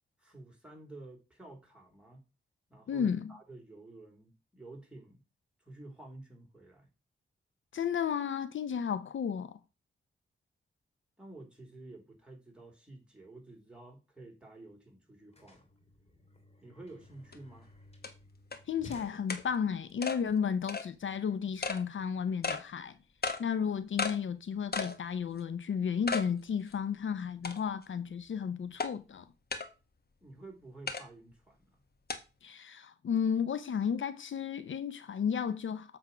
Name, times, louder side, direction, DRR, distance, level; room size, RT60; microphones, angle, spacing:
voice 1, 0.2-2.2 2.7-5.2 5.6-6.9 11.2-15.7 16.6-17.7 30.2-31.8, right 2 dB, 5° right, 3.7 m, -51 dB
voice 2, 2.9-3.3 7.7-9.6 18.7-23.0 23.4-29.3 32.4-36.0, left 7 dB, 70° left, 0.6 m, -33 dB
sound 1, 14.4-14.5 14.7-19.9, left 2 dB, 30° left, 2.7 m, -55 dB
sound 2, 17.3-17.4 18.0-18.1 18.5-18.6 19.3-19.4 20.0-20.2 20.7-20.9 21.6-21.8 22.4-22.6 23.2-23.4 24.0-24.2 24.7-25.0 25.4-25.5 26.1-26.3 26.7-26.8 27.4-27.8 28.8-28.9 29.5-29.7 30.9-31.0 32.1-32.2, left 4 dB, 50° left, 1.3 m, -34 dB
7.9 x 3.6 x 5.6 m
cardioid pair, 50°, 21 cm